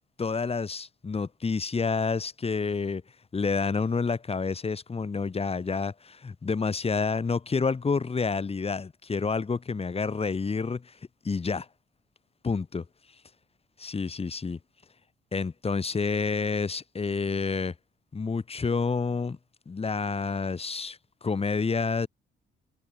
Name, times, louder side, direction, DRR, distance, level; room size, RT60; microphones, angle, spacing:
voice 1, 0.2-3.0 3.3-10.9 11.2-11.7 12.4-12.8 13.8-14.6 15.3-17.7 18.1-19.4 19.7-22.1, left 4 dB, 30° left, 2.5 m, -29 dB
cardioid pair, 90°, 20 cm